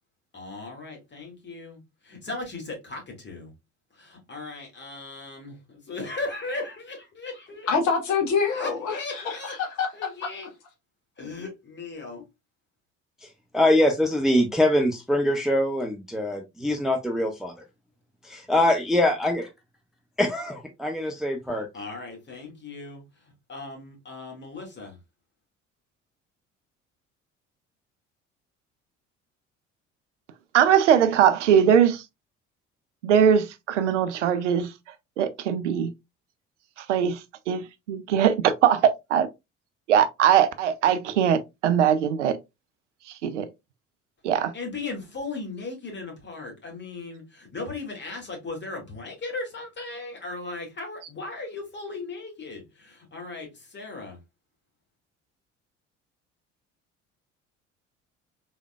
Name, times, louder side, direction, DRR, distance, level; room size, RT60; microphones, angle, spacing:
voice 1, 0.3-3.5 3.9-7.7 8.5-9.6 9.9-10.5 11.2-12.2 21.7-23.0 23.5-25.0 44.5-54.2, left 3 dB, 30° left, 2.0 m, -37 dB
voice 2, 7.7-9.9, left 5 dB, 50° left, 1.3 m, -25 dB
voice 3, 13.5-17.5 18.3-19.5 20.2-21.7, left 1 dB, ahead, 0.6 m, -23 dB
voice 4, 30.5-32.0 33.0-34.7 35.2-35.9 36.9-37.2 37.5-39.3 39.9-42.4 43.2-43.5 44.2-44.5, right 8 dB, 75° right, 0.5 m, -21 dB
4.2 x 3.5 x 2.3 m
figure-of-eight pair, 55°, 36 cm